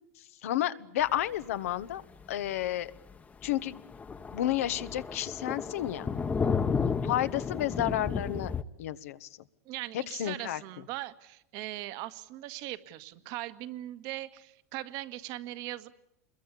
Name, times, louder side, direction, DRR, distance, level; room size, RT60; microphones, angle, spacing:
voice 1, 0.4-2.0 2.3-2.9 3.4-3.8 4.3-6.1 7.0-8.5 8.8-9.3 9.9-10.6, left 13 dB, 80° left, 12 dB, 1.3 m, -31 dB
Thunder, 1.7-1.8 2.2-2.3 2.7-2.8 3.1-3.2 3.4-8.6, left 5 dB, 20° left, 1.1 m, -32 dB
voice 2, 9.7-15.9, right 16 dB, 60° right, 11 dB, 1.8 m, -40 dB
26.5 x 22.0 x 8.5 m, 0.82 s
hypercardioid pair, 110°, 8 cm